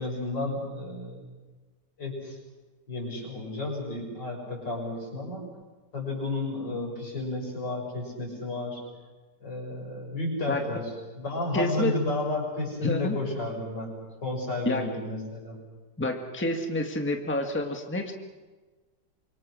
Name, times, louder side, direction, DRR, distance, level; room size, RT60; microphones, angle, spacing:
voice 1, 0.0-1.3 2.0-2.4 2.9-5.5 5.9-8.8 9.4-10.8 11.2-13.9 14.2-15.6, left 2 dB, 90° left, -1 dB, 7.0 m, -32 dB
voice 2, 11.5-11.9 12.8-13.2 14.7-14.9 16.0-18.1, left 1 dB, 5° left, 3 dB, 1.6 m, -28 dB
26.5 x 23.0 x 6.4 m, 1.3 s
omnidirectional pair, 1.9 m